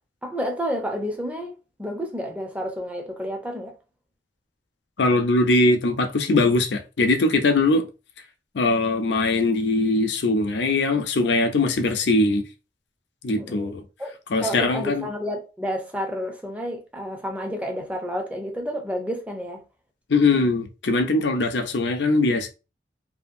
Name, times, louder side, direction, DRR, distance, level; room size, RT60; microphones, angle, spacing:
voice 1, 0.2-3.7 13.4-13.7 14.0-14.1 14.4-19.6, equal, 10° right, 0.6 m, -30 dB
voice 2, 5.0-7.9 8.5-12.4 13.2-13.8 14.3-15.1 20.1-22.5, left 2 dB, 70° left, 0.5 m, -21 dB
2.8 x 2.5 x 2.5 m
head